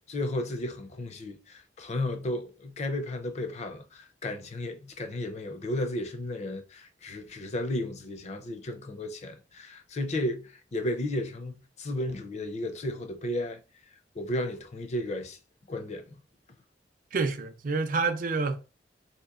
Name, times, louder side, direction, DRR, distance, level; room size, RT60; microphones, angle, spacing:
voice 1, 0.1-13.6 14.1-15.4 15.7-16.1, left 1 dB, 40° left, 0.5 m, -33 dB
voice 2, 17.1-18.6, right 4 dB, 50° right, 0.5 m, -28 dB
4.1 x 2.8 x 2.4 m
head